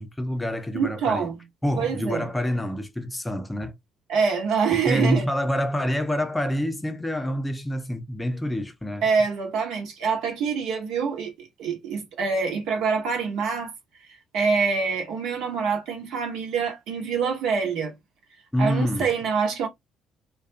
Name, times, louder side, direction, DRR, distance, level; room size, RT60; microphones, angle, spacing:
voice 1, 0.0-1.3 1.6-3.7 4.9-9.1 18.5-19.1, equal, 10° left, 0.6 m, -27 dB
voice 2, 0.7-1.4 1.8-2.3 4.1-5.3 9.0-13.7 14.3-17.9 18.6-19.7, right 5 dB, 65° right, 0.9 m, -25 dB
2.3 x 2.3 x 2.6 m
hypercardioid pair, 50°, 0 cm